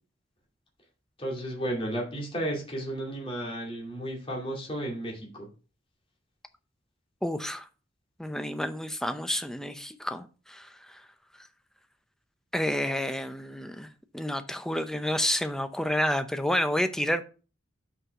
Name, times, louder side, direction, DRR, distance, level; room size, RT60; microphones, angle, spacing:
voice 1, 1.2-5.5, right 1 dB, 30° left, 2.4 m, -33 dB
voice 2, 7.2-7.7 8.2-11.0 12.5-13.9 14.1-17.2, left 1 dB, 5° left, 0.6 m, -29 dB
5.8 x 5.5 x 4.7 m
head